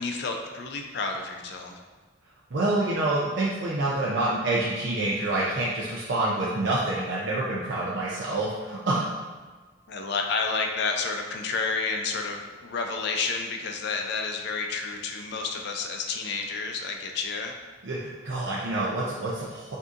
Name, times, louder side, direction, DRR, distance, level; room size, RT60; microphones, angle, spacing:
voice 1, 0.0-1.8 9.9-17.5, left 4 dB, 55° left, 3 dB, 0.5 m, -30 dB
voice 2, 2.5-9.1 17.8-19.8, right 2 dB, 60° right, -5 dB, 0.5 m, -27 dB
6.1 x 2.7 x 2.5 m, 1.4 s
head